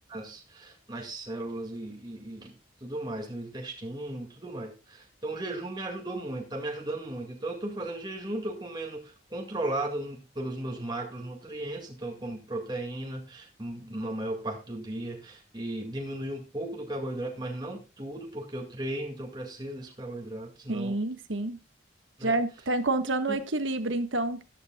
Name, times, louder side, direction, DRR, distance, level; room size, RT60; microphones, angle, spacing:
voice 1, 0.1-2.5 2.8-21.0 22.2-22.4 23.3-23.4, right 1 dB, 20° right, 2.1 m, -36 dB
voice 2, 20.7-21.6 22.2-24.4, right 2 dB, 80° right, 1.4 m, -28 dB
13.5 x 11.5 x 2.3 m
head